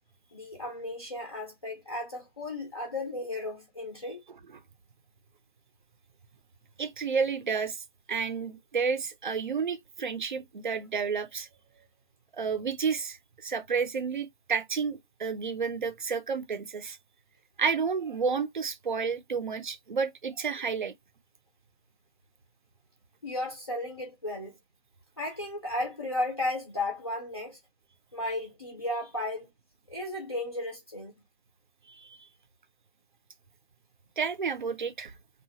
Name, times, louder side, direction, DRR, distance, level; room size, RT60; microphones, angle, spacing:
voice 1, 0.3-4.2 23.2-24.6 25.2-27.6 28.1-29.5 29.9-31.1, left 1 dB, 25° left, 0.5 m, -34 dB
voice 2, 6.8-11.5 12.3-13.2 13.4-17.0 17.6-20.9 31.9-32.2 34.2-35.1, right 5 dB, 50° right, 0.5 m, -31 dB
2.8 x 2.3 x 2.7 m
figure-of-eight pair, 155°, 32 cm